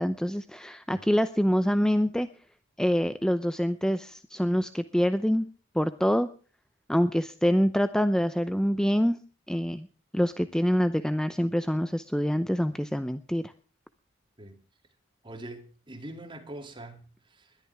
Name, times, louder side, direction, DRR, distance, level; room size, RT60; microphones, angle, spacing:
voice 1, 0.0-2.3 2.8-5.5 5.7-6.3 6.9-9.2 9.5-9.9 10.1-13.5, equal, 5° left, 0.6 m, -25 dB
voice 2, 15.2-17.6, right 1 dB, 25° right, 2.8 m, -43 dB
21.0 x 12.5 x 3.6 m
head